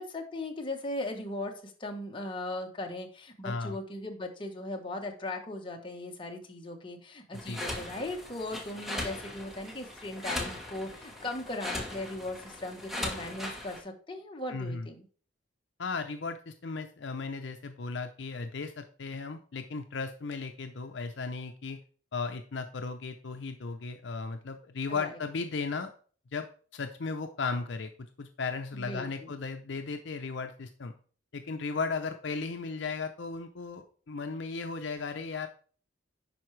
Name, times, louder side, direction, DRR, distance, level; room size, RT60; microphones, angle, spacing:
voice 1, 0.0-15.0 24.9-25.1 28.7-29.3, left 2 dB, 25° left, 2 dB, 1.1 m, -38 dB
voice 2, 3.4-3.8 7.3-7.6 14.5-14.9 15.8-21.8 22.1-25.9 26.3-26.5 26.7-30.9 31.3-35.5, left 4 dB, 65° left, 6 dB, 0.6 m, -36 dB
sound 1, 7.3-13.8, left 1 dB, ahead, 1.2 m, -39 dB
10.5 x 4.6 x 3.2 m, 0.42 s
head